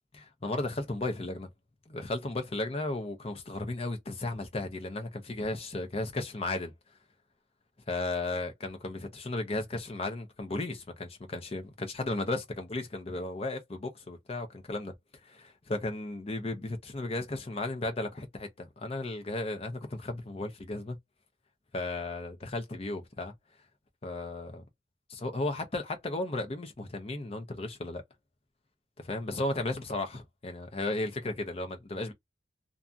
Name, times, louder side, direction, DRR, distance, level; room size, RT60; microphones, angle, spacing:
voice 1, 0.1-1.5 1.9-6.7 7.9-14.9 15.3-21.0 21.7-23.3 24.0-24.6 25.1-28.0 29.0-32.1, left 2 dB, 30° left, 0.6 m, -35 dB
2.6 x 2.3 x 2.5 m
head